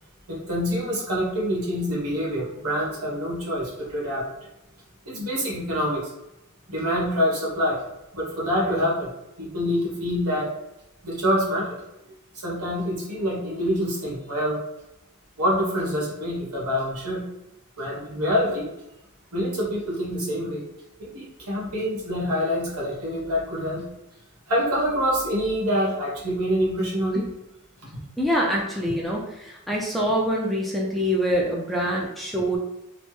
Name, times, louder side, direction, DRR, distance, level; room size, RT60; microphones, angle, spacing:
voice 1, 0.3-4.5 5.0-6.1 6.7-7.8 8.1-9.1 9.4-10.5 11.0-11.8 12.4-14.6 15.4-17.2 17.8-18.7 19.3-20.6 21.0-23.9 24.5-27.3, equal, 85° right, -4 dB, 1.2 m, -26 dB
voice 2, 28.2-32.6, equal, ahead, -3 dB, 0.4 m, -25 dB
3.2 x 2.0 x 3.1 m, 0.91 s
head